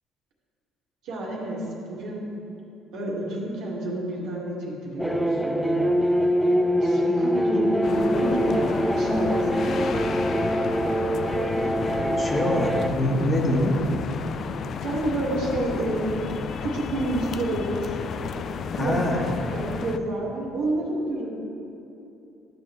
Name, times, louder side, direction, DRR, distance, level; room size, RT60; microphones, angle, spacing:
voice 1, 1.0-2.2 2.9-5.9 6.8-10.0 14.8-16.1 16.6-18.0 18.8-19.0 19.5-21.3, right 1 dB, 70° right, -4 dB, 1.8 m, -29 dB
sound 1, 5.0-12.9, equal, ahead, 0.5 m, -24 dB
sound 2, 7.8-20.0, left 6 dB, 55° left, 0.4 m, -33 dB
voice 2, 12.2-13.8 18.7-19.3, left 1 dB, 35° left, 0 dB, 1.4 m, -24 dB
12.0 x 6.8 x 3.1 m, 2.8 s
hypercardioid pair, 60°, 0 cm